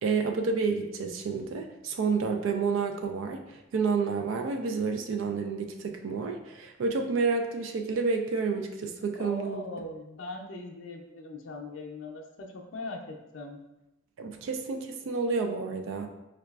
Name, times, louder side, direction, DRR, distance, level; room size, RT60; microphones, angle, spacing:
voice 1, 0.0-3.4 3.7-9.6 14.2-16.1, right 4 dB, 75° right, 4 dB, 0.3 m, -29 dB
voice 2, 9.2-13.6, left 2 dB, 75° left, 2 dB, 0.5 m, -40 dB
4.7 x 2.3 x 2.3 m, 0.92 s
head